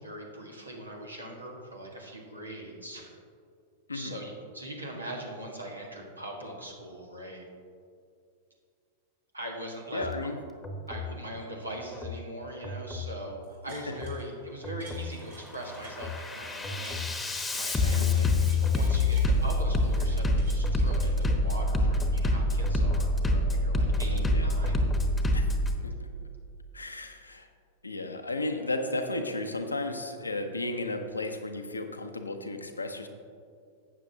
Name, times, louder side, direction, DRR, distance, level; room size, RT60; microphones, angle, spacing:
voice 1, 0.0-3.1 3.9-7.4 9.3-10.3 10.9-17.1 17.5-24.8, right 1 dB, 90° right, 0 dB, 1.6 m, -41 dB
voice 2, 9.9-10.4 13.7-13.9 18.0-18.3 24.1-24.5 25.3-25.6 25.8-26.1 26.7-27.5 27.8-33.1, left 2 dB, 90° left, 6 dB, 0.8 m, -34 dB
Bass drum, 9.9-10.2 10.6-11.1 11.9-12.2 12.6-13.1 13.9-14.2 14.6-15.1 15.5-25.8, left 2 dB, 10° left, 1.0 m, -27 dB
sound 1, 13.4-14.3 14.6-17.1 17.4-19.3 19.7-21.7 22.2-22.3, right 4 dB, 65° right, 2.5 m, -52 dB
12.5 x 8.4 x 2.8 m, 2.3 s
figure-of-eight pair, 95°, 0 cm